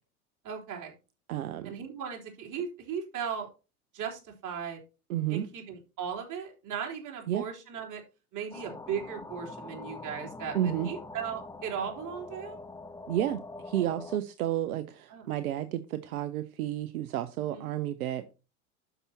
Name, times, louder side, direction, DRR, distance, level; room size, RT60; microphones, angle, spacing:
voice 1, 0.4-0.9 1.6-3.5 3.9-4.8 5.3-8.0 8.3-12.6 15.1-15.3 17.5-17.7, right 7 dB, 45° right, 3.9 m, -37 dB
voice 2, 1.3-1.7 5.1-5.5 7.3-7.5 10.5-10.9 13.1-18.2, right 12 dB, 75° right, 0.8 m, -31 dB
sound 1, 8.5-14.2, left 2 dB, 5° left, 0.9 m, -44 dB
12.0 x 5.9 x 2.8 m
hypercardioid pair, 85°, 44 cm